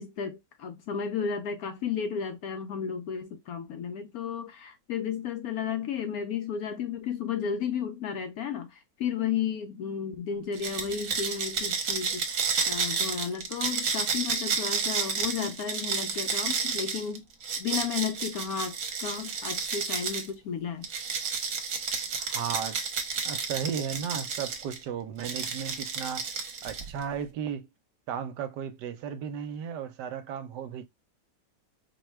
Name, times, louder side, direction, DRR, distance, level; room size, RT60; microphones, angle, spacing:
voice 1, 0.0-17.2 17.6-20.9, left 7 dB, 70° left, 0.9 m, -33 dB
sound 1, 10.5-20.3 20.8-24.8 25.2-27.0, right 5 dB, 55° right, 1.2 m, -31 dB
voice 2, 22.1-22.8 23.2-26.3 26.6-27.7 28.1-30.9, right 8 dB, 75° right, 1.2 m, -35 dB
4.7 x 2.3 x 3.1 m
omnidirectional pair, 1.9 m